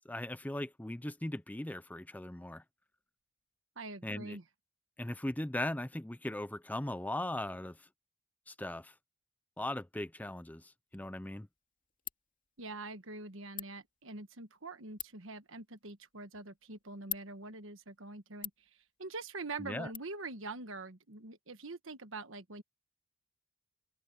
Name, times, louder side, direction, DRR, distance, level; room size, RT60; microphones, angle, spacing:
voice 1, 0.1-2.6 4.0-4.4 5.0-7.9 8.5-8.9 9.6-11.5 19.6-19.9, left 1 dB, 10° left, 0.5 m, -39 dB
voice 2, 3.7-4.4 12.6-18.5 19.0-22.6, right 3 dB, 65° right, 1.4 m, -44 dB
Ratchet pawl, 10.9-20.0, left 12 dB, 40° left, 2.5 m, -50 dB
head